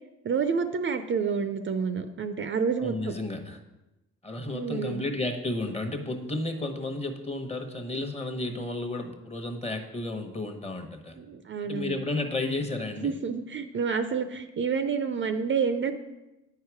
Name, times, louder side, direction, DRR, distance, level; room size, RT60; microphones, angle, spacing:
voice 1, 0.2-3.1 4.5-5.0 11.2-12.0 13.0-15.9, right 6 dB, 40° right, 9 dB, 0.5 m, -29 dB
voice 2, 2.8-3.6 4.2-11.2 11.6-13.1, left 2 dB, 20° left, 5 dB, 1.1 m, -32 dB
8.9 x 4.7 x 4.8 m, 1.0 s
cardioid pair, 90°, 30 cm